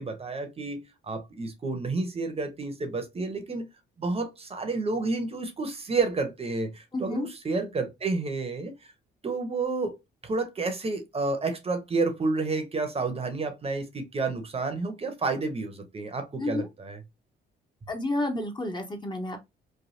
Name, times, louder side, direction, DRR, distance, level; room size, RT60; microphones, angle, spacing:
voice 1, 0.0-3.7 4.0-8.8 9.2-10.0 10.2-17.0, right 3 dB, 30° right, 0.7 m, -30 dB
voice 2, 6.9-7.3 16.4-16.7 17.9-19.4, left 2 dB, 20° left, 0.7 m, -30 dB
3.2 x 2.2 x 2.6 m
cardioid pair, 90°, 20 cm